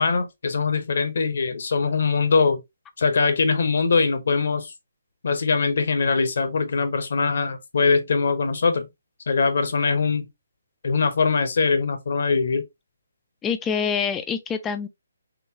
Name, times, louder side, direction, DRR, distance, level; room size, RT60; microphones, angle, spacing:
voice 1, 0.0-2.6 3.0-4.7 5.2-8.9 9.3-10.3 10.8-12.6, left 4 dB, 50° left, 0.8 m, -22 dB
voice 2, 13.4-14.9, left 6 dB, 10° left, 0.4 m, -26 dB
3.9 x 3.7 x 2.7 m
figure-of-eight pair, 140°, 0 cm